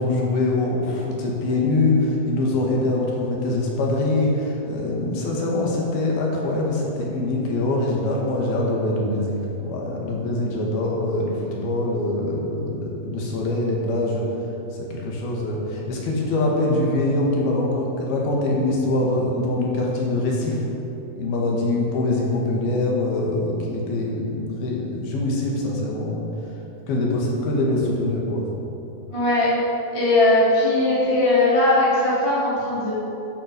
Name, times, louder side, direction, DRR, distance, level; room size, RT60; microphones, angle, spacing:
voice 1, 0.0-14.3 14.8-20.6 21.1-26.3 26.9-28.4, left 2 dB, 55° left, -2 dB, 3.3 m, -23 dB
voice 2, 29.1-29.5 29.9-32.9, left 2 dB, 10° left, -9 dB, 2.1 m, -19 dB
15.5 x 10.0 x 5.3 m, 3.0 s
omnidirectional pair, 6.0 m